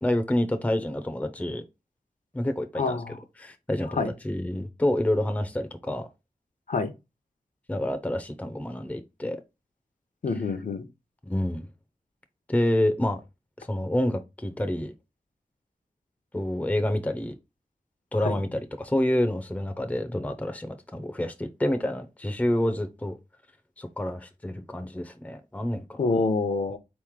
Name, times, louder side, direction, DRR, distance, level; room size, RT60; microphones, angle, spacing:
voice 1, 0.0-1.6 2.3-3.0 3.4-6.1 7.7-9.4 11.3-11.7 12.5-13.2 13.6-14.9 16.3-17.3 18.1-23.2 23.8-26.1, left 1 dB, 10° left, 0.5 m, -28 dB
voice 2, 2.7-3.2 3.9-4.1 6.7-6.9 10.2-10.8 18.2-18.4 26.0-26.8, left 3 dB, 60° left, 0.7 m, -26 dB
4.1 x 3.1 x 3.6 m
wide cardioid pair, 75°, 15 cm